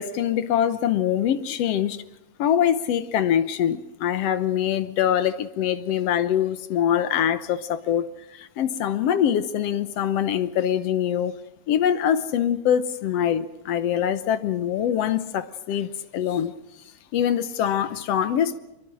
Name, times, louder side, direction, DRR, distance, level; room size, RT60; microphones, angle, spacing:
voice 1, 0.0-2.0 2.4-8.1 8.3-11.3 11.7-16.5 17.1-18.6, left 9 dB, 65° left, 1.9 m, -24 dB
23.0 x 23.0 x 6.3 m
omnidirectional pair, 3.3 m